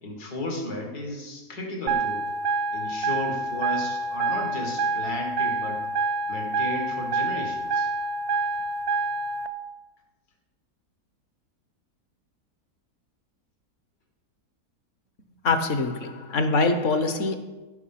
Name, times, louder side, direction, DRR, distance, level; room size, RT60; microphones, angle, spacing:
voice 1, 0.0-2.2 2.7-5.8 6.3-7.9, left 1 dB, 75° left, 1 dB, 2.6 m, -34 dB
sound 1, 1.9-9.5, right 3 dB, 85° right, 1.2 m, -27 dB
voice 2, 15.4-17.4, left 3 dB, 55° left, 9 dB, 1.2 m, -24 dB
15.5 x 5.6 x 5.8 m, 1.2 s
omnidirectional pair, 1.7 m